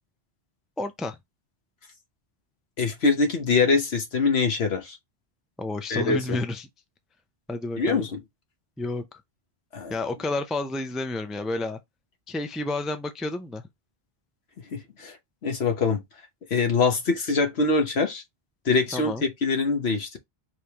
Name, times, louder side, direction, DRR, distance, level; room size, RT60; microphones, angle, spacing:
voice 1, 0.8-1.2 5.6-6.7 7.5-8.1 8.8-9.0 9.9-11.8 12.3-13.6 18.9-19.2, left 2 dB, ahead, 0.3 m, -30 dB
voice 2, 2.8-5.0 5.9-6.4 7.8-8.2 9.7-9.9 14.7-15.1 15.4-16.0 16.5-18.2 18.6-20.2, left 4 dB, 85° left, 1.3 m, -24 dB
5.0 x 3.1 x 2.9 m
omnidirectional pair, 1.0 m